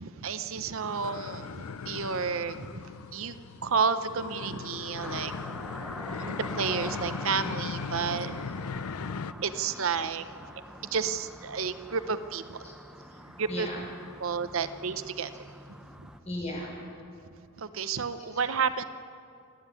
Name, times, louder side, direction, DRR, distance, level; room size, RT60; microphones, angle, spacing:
voice 1, 0.0-2.8 3.1-3.4 3.6-5.3 6.2-8.4 9.3-10.2 10.9-12.6 13.3-13.7 14.2-15.3 16.0-16.1 17.6-18.8, right 6 dB, 65° right, 11 dB, 0.7 m, -31 dB
sound 1, 0.6-9.3, left 5 dB, 80° left, 0.5 m, -38 dB
sound 2, 5.0-16.2, equal, 5° right, 0.6 m, -44 dB
voice 2, 9.0-10.4 10.7-11.2 12.6-12.7 13.0-13.9 14.3-14.7 15.8-15.9 16.2-16.8 18.2-18.5 18.8-18.9, left 1 dB, 30° left, -3 dB, 5.9 m, -43 dB
28.5 x 9.7 x 9.7 m, 2.5 s
head